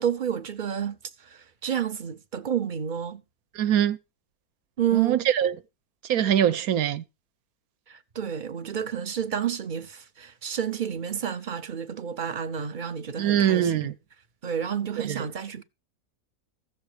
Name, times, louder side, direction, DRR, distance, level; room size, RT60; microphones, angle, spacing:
voice 1, 0.0-3.2 4.8-5.3 7.9-13.9 14.4-15.6, right 8 dB, 45° right, 0.6 m, -30 dB
voice 2, 3.6-4.0 4.9-5.5 6.1-7.0 13.2-13.9 15.0-15.2, right 10 dB, 65° right, 1.2 m, -23 dB
15.5 x 7.0 x 5.0 m
omnidirectional pair, 1.7 m